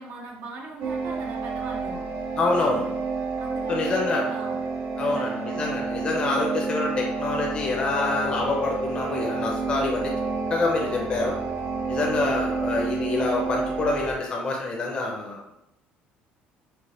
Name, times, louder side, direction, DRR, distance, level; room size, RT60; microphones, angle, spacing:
voice 1, 0.0-2.1 3.4-4.6 5.0-5.7 10.7-11.1, right 2 dB, 65° right, -1 dB, 0.8 m, -40 dB
sound 1, 0.8-14.1, right 4 dB, 85° right, 1.1 m, -29 dB
voice 2, 2.4-3.0 3.7-4.2 5.0-10.1 10.5-11.3 11.9-15.5, left 3 dB, 25° left, -1 dB, 0.7 m, -26 dB
5.1 x 2.1 x 4.2 m, 0.84 s
cardioid pair, 160°, 4 cm